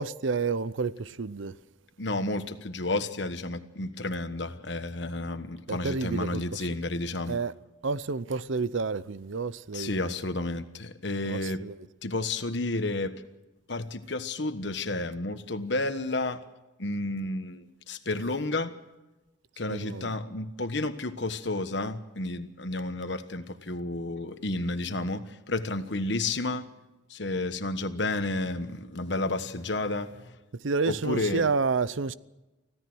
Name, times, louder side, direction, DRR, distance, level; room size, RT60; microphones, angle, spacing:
voice 1, 0.0-1.5 5.7-6.7 7.3-7.5 7.8-10.1 11.3-11.7 19.7-20.1 30.5-32.1, right 4 dB, 75° right, 0.7 m, -30 dB
voice 2, 2.0-7.4 9.7-11.6 12.0-13.2 13.7-16.4 16.8-18.7 19.6-26.7 27.1-30.4 30.9-31.5, left 2 dB, 60° left, 1.3 m, -31 dB
25.0 x 16.5 x 6.3 m
head